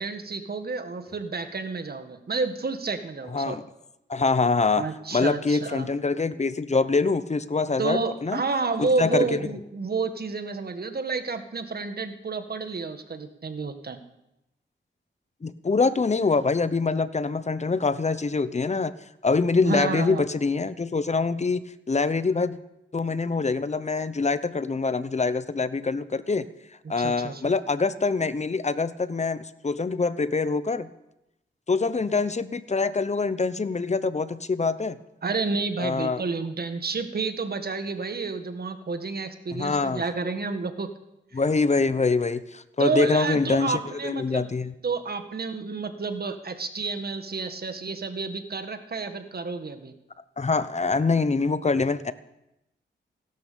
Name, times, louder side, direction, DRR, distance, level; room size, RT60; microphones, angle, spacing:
voice 1, 0.0-3.6 4.8-5.9 7.8-14.0 19.6-20.2 26.8-27.5 35.2-40.9 41.3-41.4 42.8-44.5 44.8-49.9, right 4 dB, 50° right, 8 dB, 1.7 m, -30 dB
voice 2, 3.3-3.6 4.1-8.4 8.8-9.5 15.4-18.9 19.2-22.6 22.9-26.5 26.9-30.9 31.7-35.0 35.8-36.2 39.5-40.0 41.3-44.7 50.4-52.1, left 4 dB, 35° left, 14 dB, 0.9 m, -25 dB
16.5 x 12.5 x 6.9 m, 0.88 s
cardioid pair, 70°, 20 cm